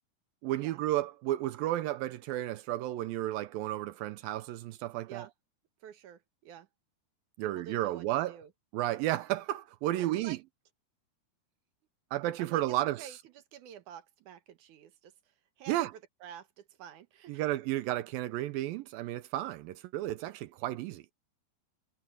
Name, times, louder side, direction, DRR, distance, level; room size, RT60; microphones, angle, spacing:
voice 1, 0.4-5.3 7.4-8.4 8.7-10.4 12.1-13.1 15.7-15.9 17.3-21.0, right 14 dB, 80° right, 2.1 m, -32 dB
voice 2, 5.8-6.7 7.4-8.5 10.0-10.4 12.4-12.6 13.0-17.4, right 9 dB, 65° right, 2.2 m, -49 dB
omnidirectional pair, 4.8 m